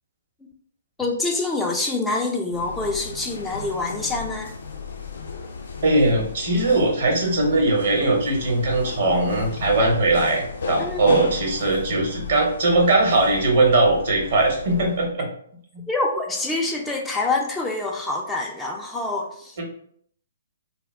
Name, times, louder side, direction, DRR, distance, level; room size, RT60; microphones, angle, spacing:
voice 1, 1.0-4.5 10.8-11.2 15.9-19.6, left 2 dB, 5° left, -1 dB, 0.3 m, -26 dB
sound 1, 2.5-15.1, left 5 dB, 65° left, 0.5 m, -35 dB
voice 2, 5.8-15.3 19.6-19.7, right 2 dB, 55° right, -1 dB, 1.0 m, -20 dB
2.2 x 2.1 x 3.3 m, 0.63 s
figure-of-eight pair, 130°, 0 cm